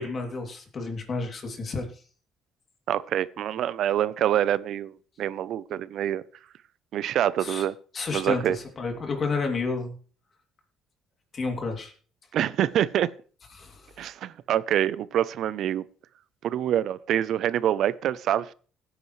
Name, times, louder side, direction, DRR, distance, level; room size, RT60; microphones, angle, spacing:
voice 1, 0.0-2.0 7.4-7.6 7.9-9.9 11.3-11.9 13.5-13.9, left 4 dB, 35° left, 2.9 m, -31 dB
voice 2, 2.9-6.2 6.9-7.7 8.1-8.6 12.3-13.1 14.0-15.8 16.4-18.5, right 11 dB, 60° right, 0.6 m, -26 dB
17.0 x 9.7 x 3.3 m
cardioid pair, 130°, 0 cm